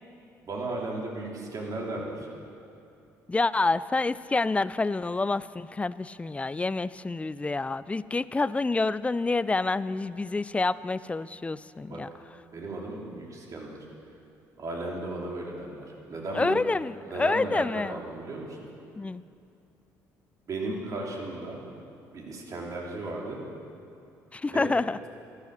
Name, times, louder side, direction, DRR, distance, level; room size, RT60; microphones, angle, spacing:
voice 1, 0.4-2.3 11.9-12.0 12.5-13.8 14.6-16.6 17.0-18.7 20.5-21.6 22.1-23.4 24.5-24.7, right 2 dB, 50° right, -2 dB, 3.4 m, -35 dB
voice 2, 3.3-12.1 16.3-17.9 19.0-19.2 24.3-25.0, left 3 dB, 15° left, 17 dB, 0.4 m, -28 dB
13.5 x 12.5 x 6.7 m, 2.6 s
supercardioid pair, 70°, 7 cm